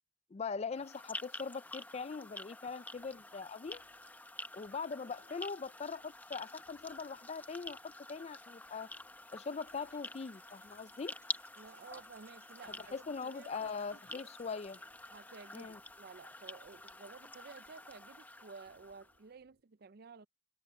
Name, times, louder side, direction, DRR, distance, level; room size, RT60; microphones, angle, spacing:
voice 1, 0.3-3.8 4.5-7.8 8.1-8.9 9.3-11.1 12.9-14.8 15.5-15.8, left 5 dB, 35° left, 0.4 m, -41 dB
sound 1, 0.7-19.2, left 2 dB, 10° left, 0.7 m, -49 dB
sound 2, 3.0-19.6, right 1 dB, 85° right, 3.6 m, -75 dB
sound 3, 9.7-14.8, right 3 dB, 15° right, 3.6 m, -68 dB
voice 2, 11.6-13.7 14.1-14.3 15.1-20.3, right 4 dB, 55° right, 0.5 m, -53 dB
head